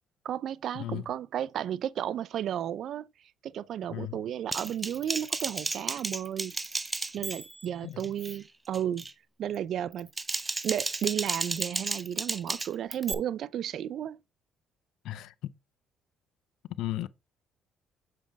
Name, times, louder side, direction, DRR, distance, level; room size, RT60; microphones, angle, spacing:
voice 1, 0.2-3.1 3.4-6.5 7.1-9.1 9.4-10.1 10.6-14.2, right 10 dB, 60° right, 0.4 m, -33 dB
voice 2, 0.7-1.1 3.9-4.2 7.8-8.1 15.0-15.5 16.7-17.1, left 14 dB, 75° left, 0.5 m, -35 dB
Typing, 4.5-7.7 8.0-8.4 8.7-9.1 9.9-13.1, right 3 dB, 15° right, 0.6 m, -33 dB
7.4 x 5.2 x 3.4 m
cardioid pair, 100°, 0 cm